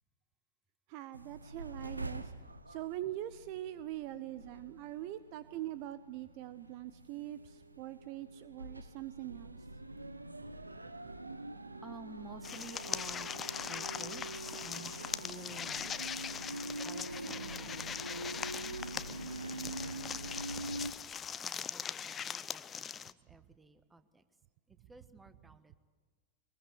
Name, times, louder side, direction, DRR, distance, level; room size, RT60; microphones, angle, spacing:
voice 1, 0.9-2.3 2.7-9.6, right 14 dB, 45° right, 15 dB, 0.7 m, -43 dB
sound 1, 1.1-20.9, right 2 dB, 85° right, 0.9 m, -45 dB
voice 2, 11.8-13.3 13.6-16.3 16.8-20.4 21.4-24.2 24.7-25.8, right 3 dB, 10° right, 11 dB, 1.4 m, -53 dB
sound 2, 12.4-23.1, left 8 dB, 25° left, 0.6 m, -41 dB
23.5 x 21.0 x 8.1 m, 1.4 s
figure-of-eight pair, 90°, 0 cm